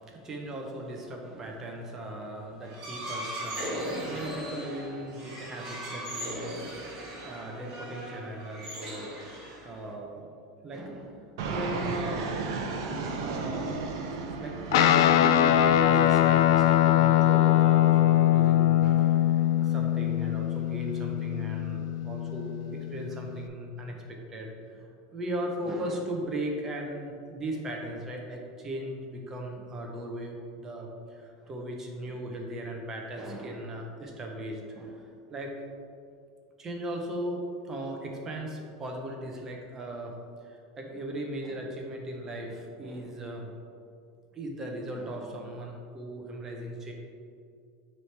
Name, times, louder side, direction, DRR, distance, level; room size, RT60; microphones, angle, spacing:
voice 1, 0.0-9.2 9.6-10.3 10.6-12.3 12.9-13.9 14.4-35.5 36.6-40.2 40.4-43.5 44.3-46.9, right 1 dB, 15° right, 1 dB, 0.6 m, -38 dB
sound 1, 2.6-9.9, equal, 35° right, 1.4 m, -38 dB
Fixed-wing aircraft airplane, 11.4-16.8, right 4 dB, 65° right, 0.6 m, -34 dB
Guitar, 14.7-23.5, left 12 dB, 70° left, 0.3 m, -22 dB
9.2 x 3.1 x 3.3 m, 2.4 s
supercardioid pair, 175°, 2 cm